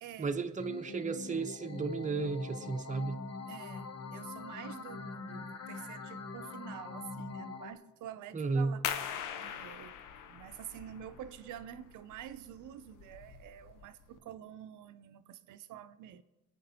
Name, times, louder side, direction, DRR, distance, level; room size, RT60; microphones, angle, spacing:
voice 1, 0.2-3.2 8.3-8.8, right 4 dB, 25° right, 0.8 m, -34 dB
sound 1, 0.6-7.7, left 4 dB, 60° left, 1.0 m, -43 dB
voice 2, 3.5-8.9 9.4-10.0 10.3-16.2, right 10 dB, 80° right, 0.5 m, -48 dB
sound 2, 8.8-14.2, left 9 dB, 90° left, 0.8 m, -42 dB
20.5 x 9.0 x 2.8 m
cardioid pair, 90°, 30 cm